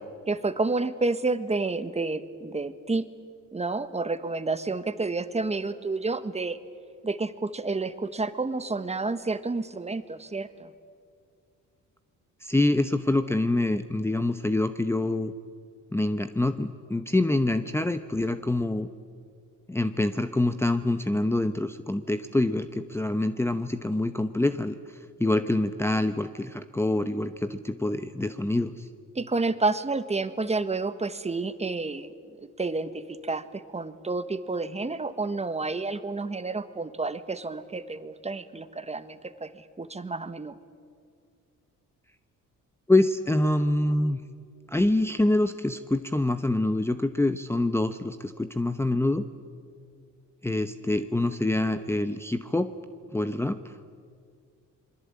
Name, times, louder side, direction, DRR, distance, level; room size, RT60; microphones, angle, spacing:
voice 1, 0.3-3.0 3.5-6.6 7.0-10.7 29.1-32.1 32.6-39.5 39.8-40.5, right 3 dB, 20° right, 11 dB, 1.4 m, -30 dB
voice 2, 12.4-15.3 15.9-18.9 19.7-24.8 25.2-28.9 42.9-44.2 44.7-49.2 50.4-52.7 53.1-53.8, left 2 dB, 10° left, 10 dB, 0.9 m, -26 dB
27.0 x 22.0 x 8.7 m, 2.2 s
cardioid pair, 90°, 30 cm